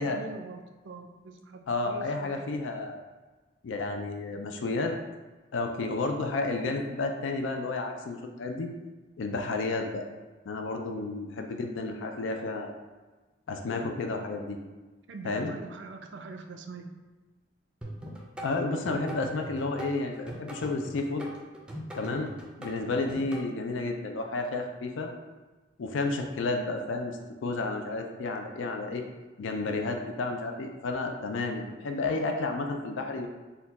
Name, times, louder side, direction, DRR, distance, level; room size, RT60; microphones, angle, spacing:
voice 1, 0.0-2.5 15.1-16.9, right 3 dB, 65° right, 5 dB, 0.4 m, -43 dB
voice 2, 1.7-3.0 3.6-5.0 5.5-8.7 9.2-10.0 10.5-12.7 13.5-14.6 15.2-15.5 18.4-21.3 22.0-22.3 22.6-25.1 25.8-29.0 29.4-33.3, left 3 dB, 75° left, 4 dB, 0.4 m, -31 dB
sound 1, 17.8-23.4, right 1 dB, 5° right, 0.4 m, -41 dB
4.3 x 2.3 x 4.0 m, 1.2 s
head